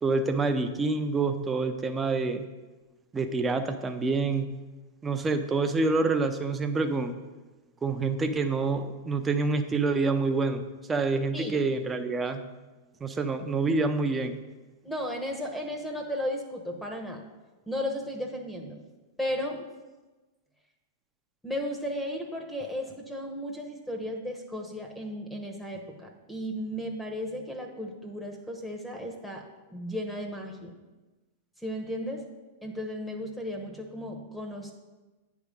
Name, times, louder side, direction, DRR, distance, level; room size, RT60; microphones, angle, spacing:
voice 1, 0.0-2.4 3.1-4.5 5.0-7.1 7.8-10.6 10.9-12.4 13.0-14.4, right 3 dB, 20° right, 8 dB, 0.6 m, -27 dB
voice 2, 14.8-17.2 17.7-18.8 19.2-19.6 21.4-29.4 29.7-30.8 31.6-32.2 32.6-34.7, equal, 5° left, 3 dB, 0.9 m, -35 dB
9.4 x 3.6 x 5.2 m, 1.2 s
hypercardioid pair, 105°, 0 cm